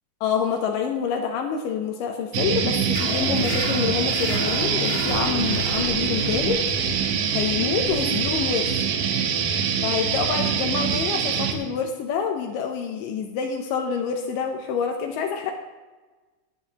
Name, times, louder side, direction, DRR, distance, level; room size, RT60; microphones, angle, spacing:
voice 1, 0.2-6.6 7.3-8.7 9.8-15.5, left 7 dB, 80° left, 3 dB, 2.4 m, -27 dB
sound 1, 2.3-11.5, right 7 dB, 80° right, 2.4 m, -24 dB
sound 2, 2.9-10.1, left 3 dB, 40° left, 1.3 m, -34 dB
17.0 x 9.5 x 2.9 m, 1.3 s
omnidirectional pair, 3.8 m